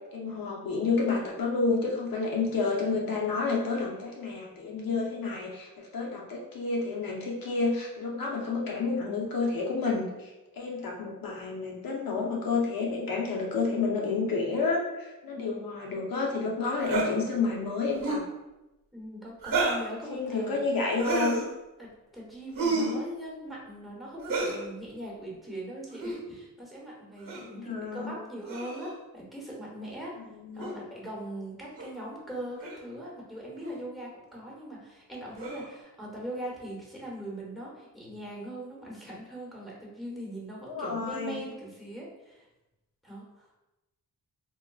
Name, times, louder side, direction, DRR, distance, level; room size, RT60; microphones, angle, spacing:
voice 1, 0.0-10.3 10.6-18.2 20.1-21.5 22.7-23.0 27.3-28.1 30.4-30.8 40.7-41.4, left 4 dB, 65° left, -2 dB, 0.7 m, -30 dB
sound 1, 16.8-17.1 17.9-18.3 19.4-19.9 21.0-21.5 22.5-23.0 24.2-24.6 25.9-26.2 27.3-27.5 28.4-28.9 30.6-30.7 31.8-31.9 32.6-32.8 33.6-33.8 35.3-35.7, right 3 dB, 60° right, 1.1 m, -30 dB
voice 2, 18.9-20.7 21.8-30.2 30.5-42.5 43.0-43.5, right 1 dB, ahead, -5 dB, 1.1 m, -41 dB
4.4 x 2.2 x 2.3 m, 0.99 s
cardioid pair, 75°, 37 cm